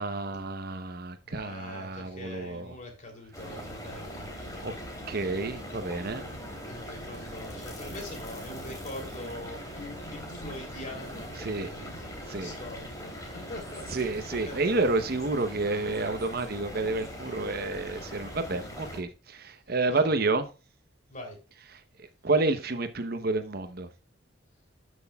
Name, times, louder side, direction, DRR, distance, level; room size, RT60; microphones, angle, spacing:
voice 1, 0.0-2.7 4.6-4.7 5.1-6.2 11.4-11.7 12.3-12.5 13.9-20.4 22.2-23.9, right 3 dB, 55° right, 0.9 m, -29 dB
voice 2, 1.3-4.3 6.7-11.9 12.4-14.0 14.3-14.8 19.9-20.1 21.1-21.4, left 1 dB, 40° left, 3.2 m, -43 dB
sound 1, 3.3-19.0, equal, 20° left, 3.1 m, -41 dB
13.0 x 6.3 x 2.3 m
head